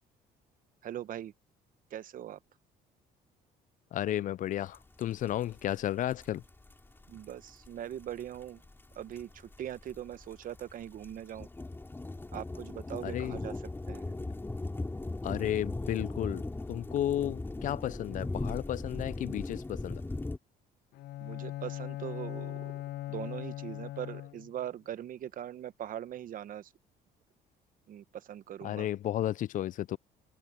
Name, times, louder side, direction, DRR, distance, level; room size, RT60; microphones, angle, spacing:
voice 1, 0.8-1.3 1.9-2.4 7.1-8.6 9.0-9.3 9.6-11.5 12.3-13.5 13.9-14.0 21.2-22.8 23.1-26.6 27.9-28.9, right 11 dB, 55° right, 0.9 m, -41 dB
voice 2, 3.9-6.4 13.0-13.4 15.2-16.4 16.7-20.0 28.6-30.0, left 12 dB, 50° left, 0.4 m, -33 dB
sound 1, 4.7-4.8 5.0-20.4, left 2 dB, 15° left, 2.9 m, -38 dB
Bowed string instrument, 20.9-24.7, left 15 dB, 75° left, 0.8 m, -40 dB
cardioid pair, 110°, 17 cm